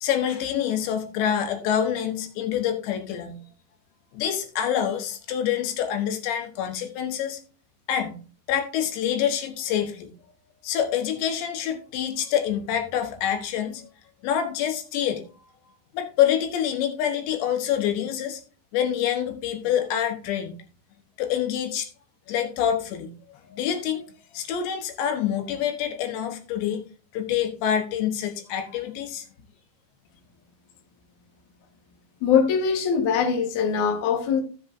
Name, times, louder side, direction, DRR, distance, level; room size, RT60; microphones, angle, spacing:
voice 1, 0.0-3.4 4.1-7.4 7.9-8.2 8.5-10.1 10.6-13.9 14.2-15.2 15.9-18.4 18.7-20.6 21.2-21.9 22.3-24.1 24.3-26.8 27.1-29.3, left 9 dB, 90° left, 3.5 m, -26 dB
voice 2, 32.2-34.4, left 6 dB, 60° left, 2.3 m, -22 dB
16.0 x 7.1 x 2.6 m
omnidirectional pair, 4.9 m